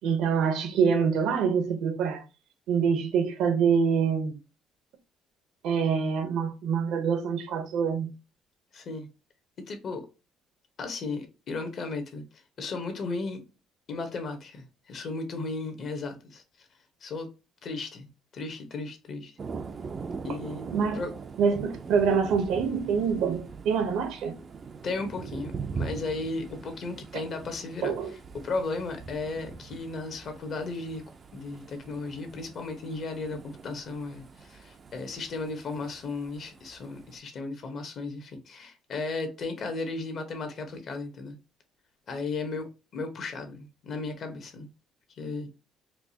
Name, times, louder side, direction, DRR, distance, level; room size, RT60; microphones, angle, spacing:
voice 1, 0.0-2.2 2.7-4.4 5.6-8.1 20.3-20.4 20.7-21.0 21.4-24.4 27.8-28.2, right 6 dB, 75° right, 0.8 m, -25 dB
voice 2, 8.7-9.1 9.7-10.1 10.8-12.2 12.6-13.4 13.9-16.4 17.0-17.3 17.6-19.3 20.2-20.7 20.9-21.1 24.8-27.9 28.4-41.4 42.1-44.7 45.2-45.5, left 3 dB, 45° left, 0.9 m, -35 dB
Thunder, 19.4-37.2, right 5 dB, 35° right, 0.4 m, -42 dB
4.5 x 2.3 x 2.8 m
cardioid pair, 135°, 0 cm